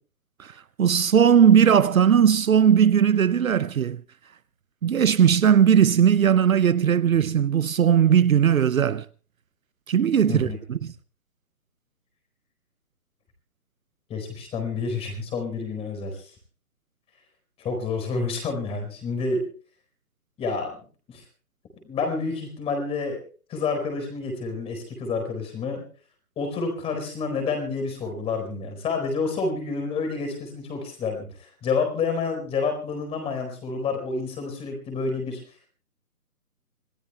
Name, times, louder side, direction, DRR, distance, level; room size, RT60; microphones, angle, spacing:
voice 1, 0.4-4.0 4.8-9.1 9.9-10.9, right 8 dB, 60° right, 0.7 m, -18 dB
voice 2, 10.3-10.6 14.1-16.3 17.6-19.4 20.4-20.8 21.1-21.2 21.8-23.2 23.5-25.8 26.4-35.4, left 4 dB, 15° left, 4.5 m, -29 dB
27.0 x 18.5 x 2.3 m
figure-of-eight pair, 145°, 45 cm